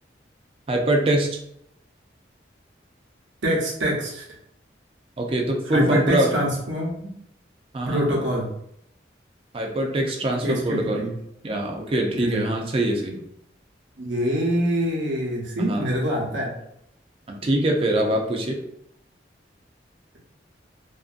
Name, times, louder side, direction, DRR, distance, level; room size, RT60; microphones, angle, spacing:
voice 1, 0.7-1.4 5.2-6.3 7.7-8.1 9.5-11.1 11.4-13.2 15.6-15.9 17.3-18.6, right 1 dB, 30° right, 1 dB, 0.4 m, -23 dB
voice 2, 3.4-4.2 5.7-7.1 7.9-8.5 10.4-11.1 12.1-12.4 14.0-16.5, equal, 85° right, -3 dB, 0.9 m, -25 dB
2.6 x 2.5 x 2.5 m, 0.75 s
head